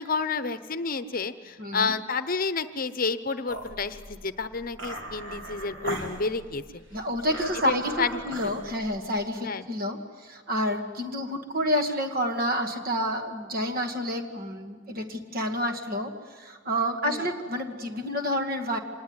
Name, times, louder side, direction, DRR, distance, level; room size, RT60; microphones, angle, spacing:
voice 1, 0.0-6.8 7.7-8.1 8.4-8.6 9.4-9.7 17.0-17.2, left 4 dB, 45° left, 12 dB, 0.9 m, -30 dB
voice 2, 1.6-1.9 6.9-18.8, equal, 50° right, 5 dB, 2.2 m, -29 dB
sound 1, 3.5-9.2, right 1 dB, 75° right, 3.0 m, -39 dB
25.5 x 19.5 x 9.7 m, 1.5 s
head